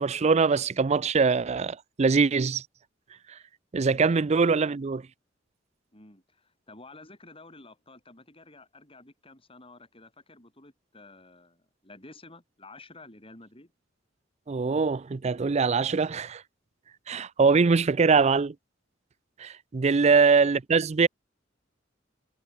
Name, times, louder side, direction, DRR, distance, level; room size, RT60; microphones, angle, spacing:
voice 1, 0.0-2.6 3.7-5.0 14.5-16.4 17.1-18.5 19.4-21.1, right 4 dB, 35° right, 0.4 m, -23 dB
voice 2, 3.8-4.3 5.9-13.7 20.1-20.2, left 2 dB, 30° left, 7.2 m, -51 dB
head